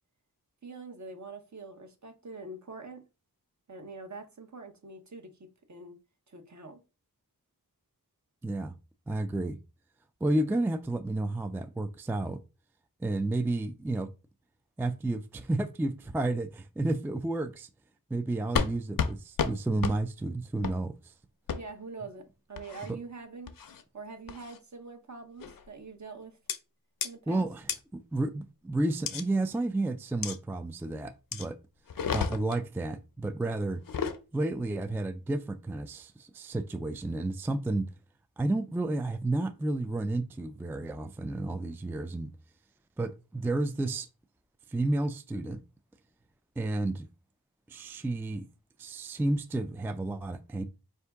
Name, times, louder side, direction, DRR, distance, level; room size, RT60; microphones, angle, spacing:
voice 1, 0.6-3.1 3.7-6.0 6.3-6.8 21.5-23.6 23.9-26.4 27.0-27.5, right 3 dB, 50° right, 0.9 m, -44 dB
voice 2, 8.4-8.7 9.1-9.6 10.2-12.4 13.0-14.1 14.8-17.7 18.1-21.1 27.3-31.6 32.1-33.8 34.3-37.9 38.4-42.3 43.0-44.1 44.7-45.6 46.6-47.1 47.7-48.4 48.8-50.6, right 2 dB, 5° right, 0.3 m, -31 dB
sound 1, 18.6-18.7 19.0-19.1 19.4-19.5 19.8-20.0 20.6-20.8 21.5-21.6 22.6-22.9 23.5-23.8 24.3-24.6 25.4-25.7 26.5-26.6 27.0-27.1 27.7-27.8 29.1-29.2 30.2-30.4 31.3-31.5 31.9-32.6 33.8-34.2, left 6 dB, 65° left, 0.6 m, -31 dB
4.4 x 2.7 x 3.4 m
wide cardioid pair, 40°, 37 cm